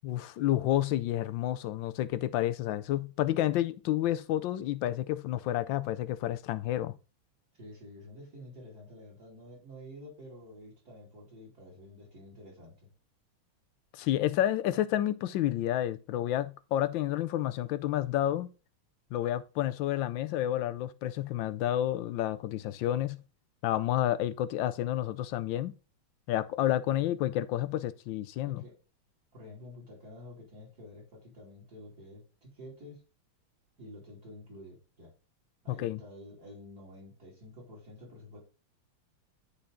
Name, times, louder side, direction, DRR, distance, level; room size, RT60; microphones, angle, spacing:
voice 1, 0.0-7.0 13.9-18.5 19.1-23.2 23.6-25.7 26.3-28.6 35.8-36.0, left 13 dB, 75° left, 1.2 m, -30 dB
voice 2, 7.6-12.8 27.0-27.2 28.4-28.8 29.3-33.0 33.8-35.1 35.6-38.4, left 1 dB, 45° right, 3.5 m, -49 dB
11.5 x 4.2 x 3.8 m
omnidirectional pair, 2.3 m